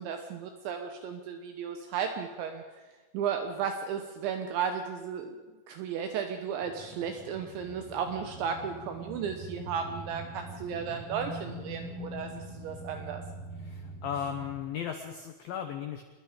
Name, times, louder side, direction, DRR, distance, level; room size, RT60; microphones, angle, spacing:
voice 1, 0.0-2.6 3.1-5.4 5.7-13.2, right 7 dB, 75° right, 6 dB, 3.3 m, -34 dB
sound 1, 6.6-14.6, right 1 dB, 45° right, 7.5 m, -43 dB
voice 2, 13.6-16.0, left 8 dB, 70° left, 5 dB, 2.3 m, -36 dB
27.0 x 21.0 x 5.1 m, 1.3 s
omnidirectional pair, 5.7 m